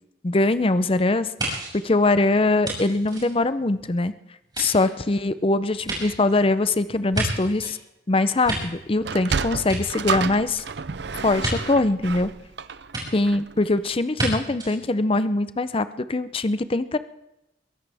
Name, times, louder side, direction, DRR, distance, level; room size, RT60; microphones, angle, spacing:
voice 1, 0.2-4.1 4.6-7.8 8.1-10.6 11.2-12.3 13.1-17.0, left 2 dB, 30° left, 13 dB, 0.6 m, -22 dB
sound 1, 1.4-4.0 4.4-7.8 8.2-9.3 9.6-10.5 11.4-11.6 12.9-13.0 14.1-14.3 14.6-14.8, right 2 dB, 25° right, 6.6 m, -31 dB
Sliding door, 8.9-13.6, right 5 dB, 65° right, 0.6 m, -30 dB
23.0 x 16.5 x 3.5 m, 0.88 s
head